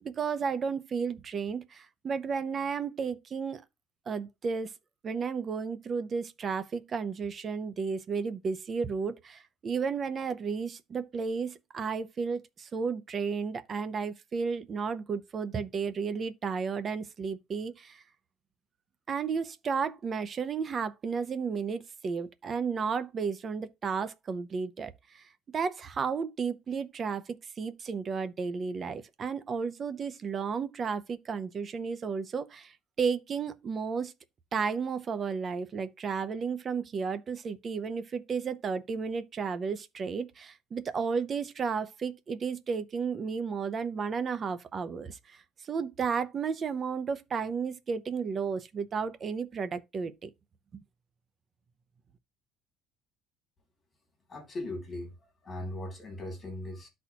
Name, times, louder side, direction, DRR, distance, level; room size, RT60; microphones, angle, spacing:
voice 1, 0.0-3.6 4.1-4.7 5.0-18.0 19.1-25.2 25.5-34.1 34.5-50.3, right 5 dB, 25° right, 0.6 m, -33 dB
voice 2, 54.3-55.1 55.4-56.9, left 1 dB, 20° left, 2.8 m, -38 dB
12.5 x 4.2 x 2.8 m
cardioid pair, 180°, 0 cm